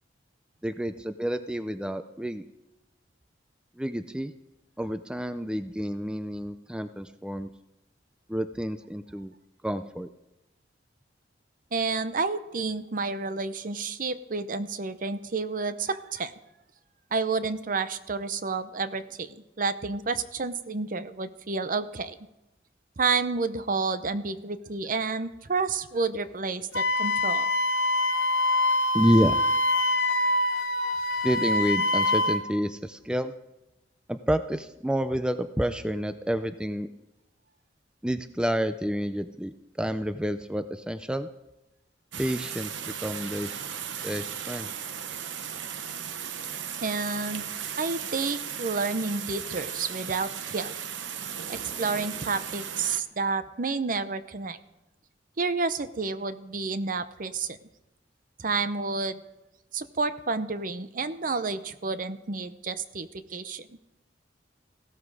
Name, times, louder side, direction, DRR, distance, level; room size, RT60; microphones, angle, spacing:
voice 1, 0.6-2.4 3.8-4.3 4.8-7.5 8.3-9.3 9.6-10.1 28.9-29.3 31.2-33.3 34.1-36.9 38.0-39.5 39.8-41.3 42.2-43.6 44.0-44.7, equal, 5° right, 10 dB, 0.4 m, -29 dB
voice 2, 11.7-16.3 17.1-22.2 23.0-27.5 46.8-47.4 47.8-50.8 51.5-54.6 55.4-57.6 58.4-59.2 59.7-63.8, right 4 dB, 50° right, 12 dB, 0.7 m, -30 dB
Wind instrument woodwind instrument, 26.7-32.4, left 2 dB, 90° left, 1.0 m, -25 dB
sound 1, 42.1-53.0, right 8 dB, 90° right, 0.9 m, -36 dB
16.0 x 12.5 x 4.8 m, 0.95 s
head